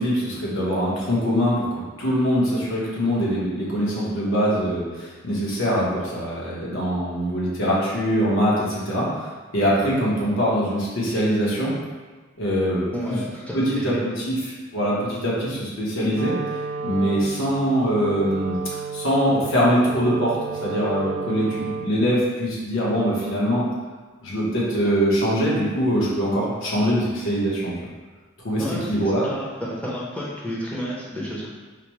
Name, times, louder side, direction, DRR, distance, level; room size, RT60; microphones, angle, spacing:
voice 1, 0.0-9.3 9.5-11.7 12.4-13.2 13.5-16.4 16.8-18.6 18.9-23.6 24.2-27.8 28.4-29.3, equal, 70° left, -6 dB, 1.0 m, -23 dB
voice 2, 12.9-14.0 28.6-31.5, equal, 5° left, -6 dB, 0.6 m, -31 dB
Wind instrument woodwind instrument, 16.1-22.1, right 5 dB, 90° right, 0.4 m, -32 dB
5.0 x 2.1 x 3.0 m, 1.4 s
head